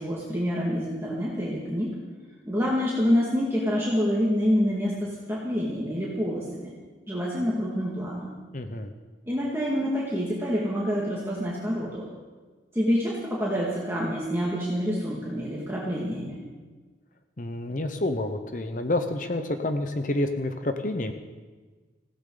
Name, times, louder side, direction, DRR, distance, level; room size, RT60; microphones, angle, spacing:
voice 1, 0.0-2.0 2.5-6.7 7.1-8.3 9.3-12.0 12.7-16.4, equal, 15° right, -5 dB, 2.0 m, -27 dB
voice 2, 8.5-8.9 17.4-21.1, left 1 dB, 45° left, 7 dB, 0.9 m, -28 dB
19.0 x 16.0 x 3.9 m, 1.4 s
head